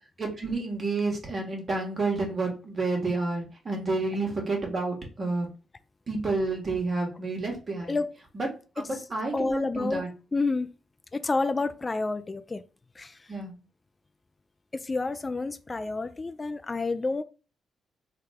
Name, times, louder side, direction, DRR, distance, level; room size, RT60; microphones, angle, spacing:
voice 1, 0.2-5.5 6.1-8.0 8.3-8.5 8.8-10.1 13.3-13.5, right 3 dB, 45° right, 1.4 m, -30 dB
voice 2, 9.3-10.1 10.3-10.7 11.1-12.6 13.0-13.3 14.7-17.2, left 3 dB, 30° left, 0.3 m, -29 dB
3.4 x 2.2 x 3.5 m
hypercardioid pair, 45°, 0 cm